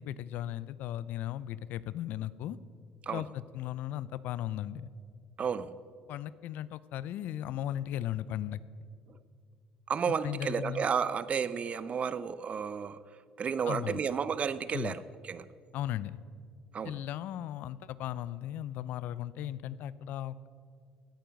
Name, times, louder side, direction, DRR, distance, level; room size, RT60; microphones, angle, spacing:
voice 1, 0.0-2.6 3.1-4.9 6.1-8.6 10.2-10.8 13.7-14.0 14.7-15.0 15.7-16.2 16.8-20.5, left 12 dB, 70° left, 18 dB, 0.4 m, -36 dB
voice 2, 5.4-5.8 9.1-9.2 9.9-13.0 13.4-15.5 16.7-17.0, right 6 dB, 40° right, 16 dB, 0.6 m, -32 dB
17.0 x 9.1 x 5.2 m, 2.1 s
supercardioid pair, 70°, 3 cm